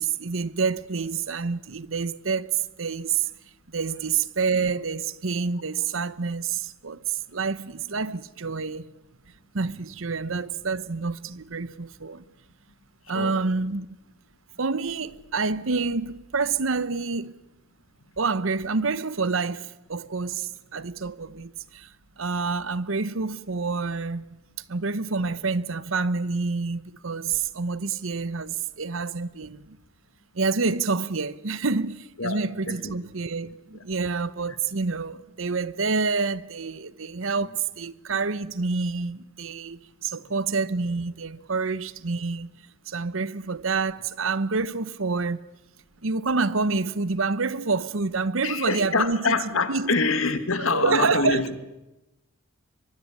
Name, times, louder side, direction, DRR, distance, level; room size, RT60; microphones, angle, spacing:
voice 1, 0.0-3.3 3.7-7.0 7.3-8.8 9.5-12.2 13.1-13.9 14.6-17.4 18.2-24.4 24.7-29.8 30.3-42.6 42.9-45.4 46.0-49.4 49.7-49.9 50.7-51.4, right 4 dB, 75° right, 0.9 m, -28 dB
voice 2, 48.4-51.6, left 3 dB, 85° left, 2.3 m, -25 dB
24.0 x 23.0 x 8.6 m
head